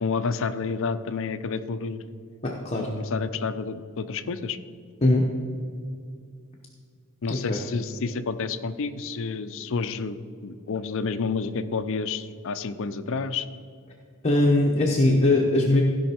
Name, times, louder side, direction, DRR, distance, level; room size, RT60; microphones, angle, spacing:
voice 1, 0.0-2.0 3.0-4.6 7.2-13.5, left 5 dB, 60° left, 12 dB, 0.5 m, -29 dB
voice 2, 2.4-2.9 5.0-5.2 7.3-7.6 14.2-15.8, left 2 dB, 30° left, -2 dB, 0.9 m, -21 dB
16.0 x 5.5 x 4.4 m, 2.3 s
head